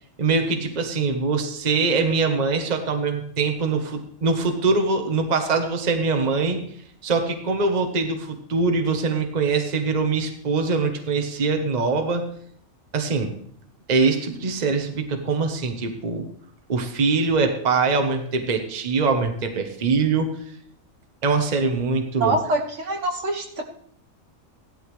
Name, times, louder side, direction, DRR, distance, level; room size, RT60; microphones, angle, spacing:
voice 1, 0.2-6.6 7.0-12.3 12.9-13.3 13.9-16.3 16.7-20.3 21.2-22.4, right 4 dB, 35° right, 5 dB, 1.1 m, -23 dB
voice 2, 22.2-23.6, right 2 dB, 60° right, 3 dB, 1.5 m, -24 dB
16.0 x 12.0 x 3.2 m, 0.63 s
omnidirectional pair, 1.4 m